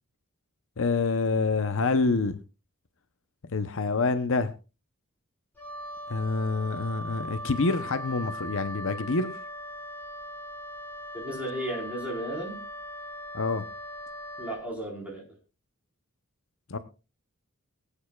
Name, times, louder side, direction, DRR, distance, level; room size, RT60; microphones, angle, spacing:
voice 1, 0.8-2.4 3.5-4.5 6.1-9.4 13.3-13.7 16.7-16.8, left 3 dB, 60° left, 11 dB, 0.8 m, -27 dB
Wind instrument woodwind instrument, 5.5-14.7, equal, 10° left, 5.7 m, -39 dB
voice 2, 11.1-12.6 14.4-15.2, right 1 dB, 5° right, -2 dB, 4.2 m, -34 dB
22.5 x 8.8 x 2.3 m, 0.30 s
head